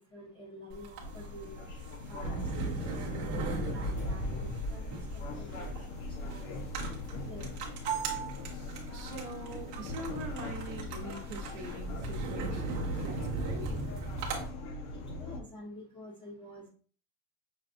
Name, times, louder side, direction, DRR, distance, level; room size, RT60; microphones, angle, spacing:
voice 1, 0.1-1.6 2.1-6.5 6.8-7.0 7.3-7.5 14.9-16.7, equal, 10° left, 0.7 m, -49 dB
sound 1, 0.7-14.4, right 2 dB, 30° right, 0.9 m, -37 dB
sound 2, 1.0-15.4, left 2 dB, 65° left, 0.8 m, -42 dB
voice 2, 8.9-13.8, right 2 dB, 60° right, 1.0 m, -43 dB
6.0 x 2.3 x 2.5 m
supercardioid pair, 165°, 46 cm